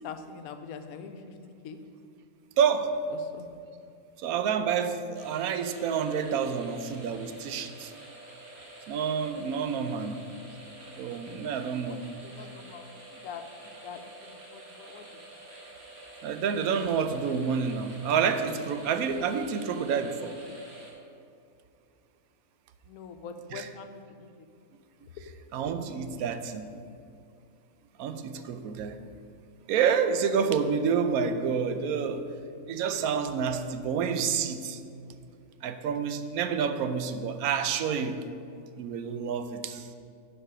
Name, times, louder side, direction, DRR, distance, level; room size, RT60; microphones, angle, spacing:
voice 1, 0.0-1.3 1.6-1.8 3.1-3.5 11.9-12.8 13.1-15.2 22.8-23.9 24.2-24.3 25.2-25.3 28.1-28.6, left 6 dB, 85° left, 8 dB, 1.1 m, -44 dB
voice 2, 2.6-2.9 4.2-8.0 8.9-10.2 11.0-12.0 16.2-20.4 23.5-23.7 25.5-26.8 28.0-29.0 29.7-32.3 32.7-34.8 35.6-38.2 38.8-39.9, right 6 dB, 90° right, 9 dB, 1.1 m, -28 dB
sound 1, 5.1-20.9, right 2 dB, 45° right, 1.9 m, -48 dB
11.0 x 4.9 x 5.0 m, 2.4 s
omnidirectional pair, 1.5 m